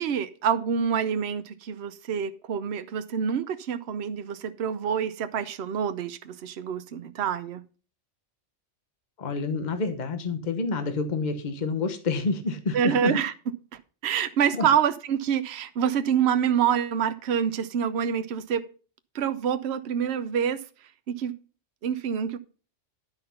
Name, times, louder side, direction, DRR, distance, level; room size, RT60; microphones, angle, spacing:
voice 1, 0.0-7.7 12.7-13.5 14.0-18.6 19.1-20.6 21.1-21.4 21.8-22.4, right 8 dB, 65° right, 1.0 m, -26 dB
voice 2, 9.2-13.2 14.6-14.7, left 3 dB, 40° left, 1.2 m, -28 dB
10.5 x 5.9 x 5.6 m
omnidirectional pair, 1.2 m